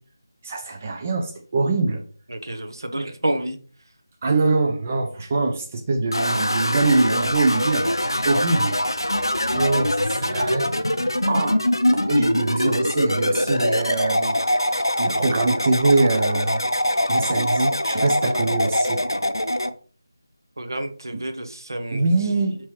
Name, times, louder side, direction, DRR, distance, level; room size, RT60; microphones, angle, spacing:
voice 1, 0.4-2.0 4.2-7.9 8.2-8.8 9.5-11.6 11.9-14.4 14.7-16.6 17.1-19.0 21.1-21.2 21.9-22.6, right 3 dB, 25° right, 0.5 m, -23 dB
voice 2, 2.3-3.6 20.6-22.1, right 1 dB, 65° right, 0.7 m, -29 dB
sound 1, 6.1-19.7, left 1 dB, 90° left, 0.5 m, -23 dB
5.5 x 3.0 x 3.0 m
figure-of-eight pair, 160°, 2 cm